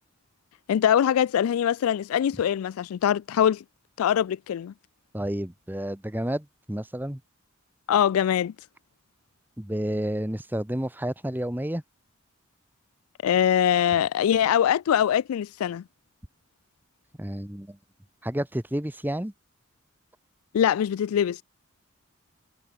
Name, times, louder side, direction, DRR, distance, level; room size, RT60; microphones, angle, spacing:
voice 1, 0.7-3.6 4.0-4.7 7.9-8.5 13.2-15.8 20.5-21.4, left 9 dB, 90° left, 0.3 m, -23 dB
voice 2, 5.1-7.2 9.6-11.8 17.2-17.8 18.2-19.3, right 1 dB, 10° right, 1.0 m, -30 dB
head